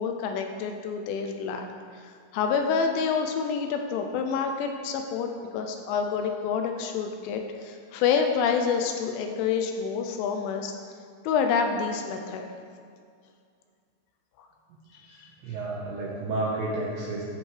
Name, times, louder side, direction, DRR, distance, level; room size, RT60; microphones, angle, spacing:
voice 1, 0.0-1.7 1.9-10.7 11.2-12.5 14.4-14.5 15.2-15.3, left 6 dB, 85° left, 4 dB, 2.9 m, -28 dB
voice 2, 15.0-17.2, right 2 dB, 75° right, -5 dB, 2.4 m, -31 dB
15.0 x 5.3 x 3.2 m, 2.2 s
omnidirectional pair, 5.7 m